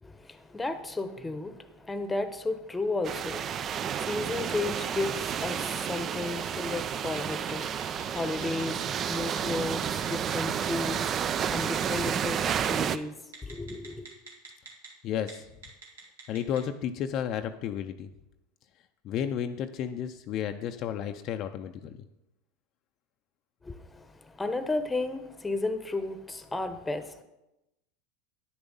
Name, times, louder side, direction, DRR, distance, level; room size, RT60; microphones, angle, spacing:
voice 1, 0.0-13.2 13.4-14.1 23.6-27.2, left 2 dB, 15° left, 0.9 m, -34 dB
sound 1, 3.0-13.0, right 8 dB, 40° right, 0.4 m, -31 dB
Telephone, 7.2-7.5 7.8-9.0 9.4-9.6 9.8-10.9 11.6-12.3 12.7-12.9 13.3-14.9 15.2-15.3 15.6-16.6, right 4 dB, 90° right, 2.1 m, -45 dB
voice 2, 15.0-15.4 16.3-18.1 19.0-22.0, left 9 dB, 50° left, 0.5 m, -32 dB
9.5 x 7.0 x 5.4 m
hypercardioid pair, 95°, 0 cm